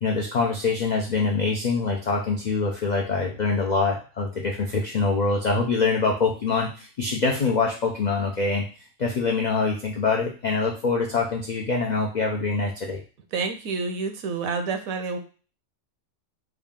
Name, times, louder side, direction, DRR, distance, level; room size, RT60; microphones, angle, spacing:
voice 1, 0.0-8.6 9.0-13.0, left 4 dB, 80° left, 0 dB, 0.3 m, -24 dB
voice 2, 13.3-15.2, right 4 dB, 85° right, 6 dB, 1.1 m, -28 dB
3.5 x 2.4 x 3.6 m, 0.37 s
omnidirectional pair, 1.4 m